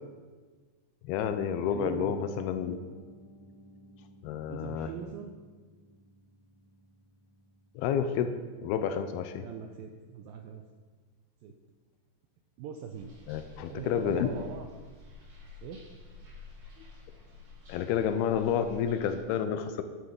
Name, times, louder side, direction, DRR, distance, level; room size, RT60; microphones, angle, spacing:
voice 1, 1.0-2.8 4.2-4.9 7.8-9.4 13.3-14.3 17.7-19.8, left 8 dB, 80° left, 9 dB, 2.3 m, -30 dB
Piano, 1.1-7.7, left 1 dB, 55° left, 2.0 m, -53 dB
voice 2, 1.6-2.2 4.5-5.3 9.4-10.6 11.4-11.5 12.6-13.2 13.7-14.7 15.6-15.8, right 7 dB, 85° right, 4 dB, 2.0 m, -41 dB
sound 1, 12.9-19.2, left 4 dB, 65° right, 5.7 m, -50 dB
11.0 x 10.0 x 5.3 m, 1.4 s
omnidirectional pair, 5.0 m